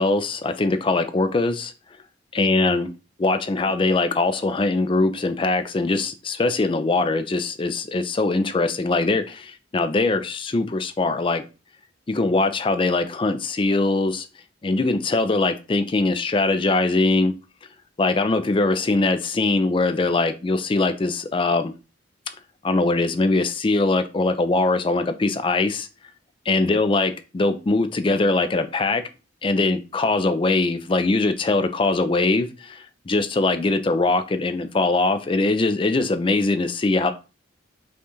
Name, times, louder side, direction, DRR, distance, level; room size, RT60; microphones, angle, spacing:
voice 1, 0.0-1.7 2.3-2.9 3.2-11.4 12.1-14.3 14.6-17.3 18.0-21.7 22.6-25.9 26.5-29.0 29.4-37.1, left 3 dB, 25° left, 0.4 m, -22 dB
5.3 x 2.4 x 3.0 m
head